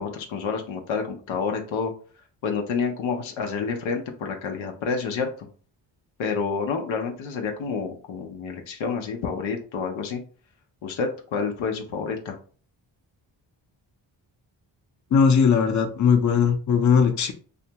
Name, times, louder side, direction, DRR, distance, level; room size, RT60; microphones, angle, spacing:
voice 1, 0.0-1.9 2.4-5.5 6.2-10.2 10.8-12.3, left 5 dB, 85° left, 3 dB, 0.6 m, -29 dB
voice 2, 15.1-17.3, left 6 dB, 40° left, 6 dB, 0.6 m, -19 dB
2.5 x 2.3 x 2.8 m, 0.41 s
supercardioid pair, 45°, 46 cm